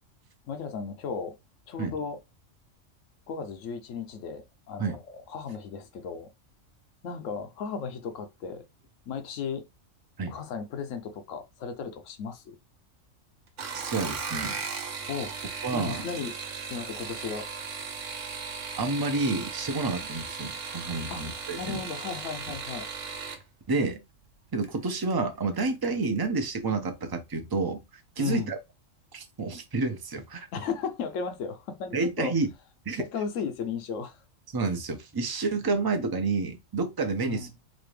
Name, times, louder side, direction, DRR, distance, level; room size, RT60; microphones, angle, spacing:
voice 1, 0.5-1.4 1.7-2.2 3.3-6.3 7.0-8.6 9.1-9.6 10.2-12.6 15.1-15.3 15.7-16.3 16.7-17.5 21.1-22.9 28.2-28.5 30.5-32.3 33.0-34.2 37.2-37.5, left 6 dB, 75° left, 1.1 m, -35 dB
sound 1, 13.5-23.4 24.6-25.1 25.5-26.0 26.2-26.3, right 5 dB, 75° right, 1.1 m, -37 dB
voice 2, 13.7-14.6 15.6-16.0 18.8-21.8 23.7-24.0 24.5-27.8 28.2-28.6 29.1-30.5 31.9-32.5 32.9-33.0 34.5-37.5, right 3 dB, 25° right, 0.5 m, -29 dB
4.1 x 2.6 x 3.2 m
omnidirectional pair, 1.3 m